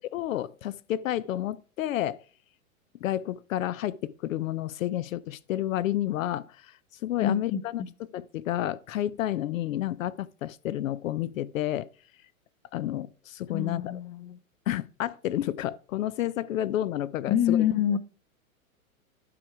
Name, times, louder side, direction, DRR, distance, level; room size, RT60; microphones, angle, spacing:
voice 1, 0.1-2.2 3.0-6.8 7.0-7.8 8.1-11.9 12.7-14.0 14.7-17.7, left 13 dB, 65° left, 0.6 m, -30 dB
voice 2, 7.2-7.9 13.5-14.4 17.3-18.0, left 9 dB, 30° left, 0.8 m, -26 dB
12.0 x 4.6 x 4.7 m
hypercardioid pair, 125°, 42 cm